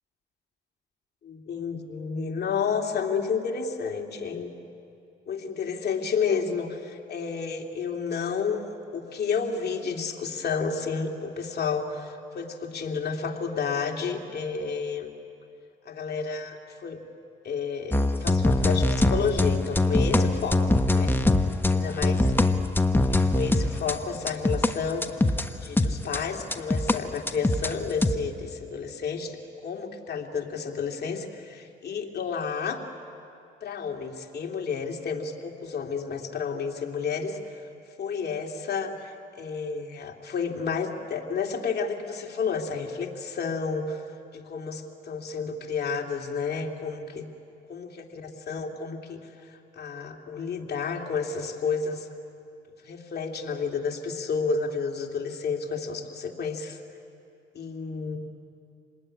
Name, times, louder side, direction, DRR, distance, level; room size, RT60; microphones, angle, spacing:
voice 1, 1.2-4.5 5.3-8.7 8.9-15.1 15.8-17.0 17.4-20.6 20.9-21.2 21.7-22.2 23.1-25.3 25.6-32.8 33.6-37.4 38.0-44.0 44.3-47.2 47.7-47.9 48.5-49.2 49.8-52.1 52.8-56.8 57.5-58.2, left 5 dB, 55° left, 2 dB, 2.6 m, -31 dB
sound 1, 17.9-24.7 25.0-27.0 27.3-28.2, left 2 dB, 10° left, 1.1 m, -23 dB
27.0 x 20.0 x 9.9 m, 2.6 s
cardioid pair, 90°, 20 cm